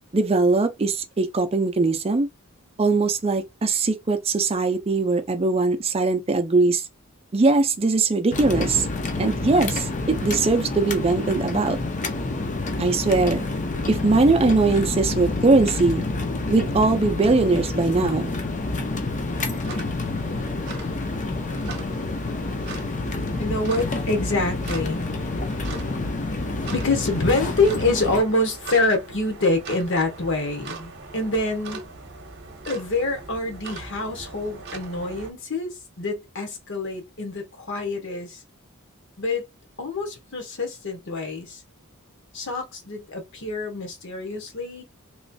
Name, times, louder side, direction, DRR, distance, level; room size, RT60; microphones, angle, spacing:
voice 1, 0.1-2.3 2.8-6.8 7.3-8.9 9.2-9.9 10.2-11.8 12.8-13.5 13.9-16.1 16.5-18.3, right 3 dB, 25° right, 0.5 m, -21 dB
sound 1, 8.3-28.2, left 2 dB, 35° left, 0.6 m, -28 dB
sound 2, 19.2-35.3, right 3 dB, 50° right, 0.8 m, -41 dB
voice 2, 23.4-25.1 26.4-31.8 32.7-38.4 39.2-39.4 39.8-41.6 42.3-44.8, left 2 dB, 60° left, 1.2 m, -26 dB
3.1 x 3.1 x 2.6 m
head